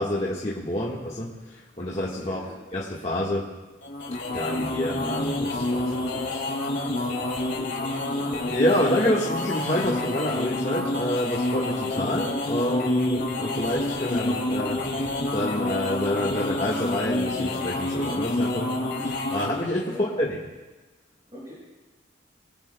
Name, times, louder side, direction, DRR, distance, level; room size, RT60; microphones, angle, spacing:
voice 1, 0.0-2.5 2.7-3.4 4.3-6.4 8.5-14.8 15.3-20.4, left 1 dB, 30° left, -5 dB, 1.4 m, -28 dB
voice 2, 2.2-2.6 7.7-8.3 19.9-20.3 21.3-21.5, left 1 dB, 25° right, -9 dB, 5.8 m, -42 dB
sound 1, 3.8-19.7, left 2 dB, 55° left, 2.5 m, -28 dB
22.5 x 17.0 x 2.2 m, 1.2 s
head